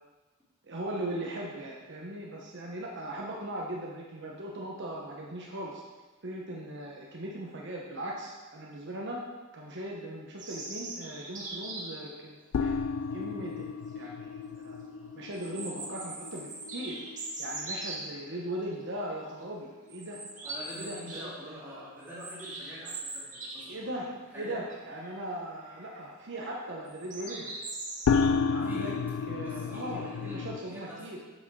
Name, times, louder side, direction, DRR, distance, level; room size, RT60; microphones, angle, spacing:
voice 1, 0.6-5.8 6.2-9.2 9.5-12.7 13.1-14.7 15.1-17.0 17.4-20.2 20.8-21.8 23.7-24.1 24.3-27.5 28.1-28.9 29.3-31.2, right 1 dB, 60° right, -3 dB, 1.1 m, -39 dB
sound 1, 10.4-12.1 13.6-13.7 14.1-14.2 15.3-18.0 18.7-19.0 19.3-19.4 19.9-21.3 21.6-23.9 24.2-24.3 24.7-25.2 25.6-26.0 26.9-28.2, right 2 dB, 40° right, 1.8 m, -41 dB
sound 2, 12.5-19.2 19.4-19.6 19.9-20.0 28.1-30.6, left 5 dB, 75° left, 0.3 m, -32 dB
voice 2, 20.4-24.0 24.3-24.7 28.6-29.1 29.4-31.1, equal, 10° right, -8 dB, 2.3 m, -45 dB
7.6 x 6.5 x 4.7 m, 1.3 s
head